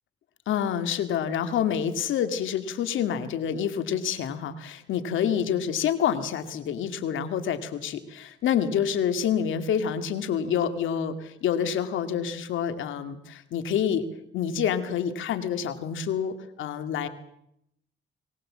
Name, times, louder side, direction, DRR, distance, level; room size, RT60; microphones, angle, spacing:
voice 1, 0.5-14.1 14.3-17.1, left 8 dB, 80° left, 9 dB, 2.3 m, -27 dB
23.0 x 19.0 x 7.6 m, 0.75 s
cardioid pair, 90°, 20 cm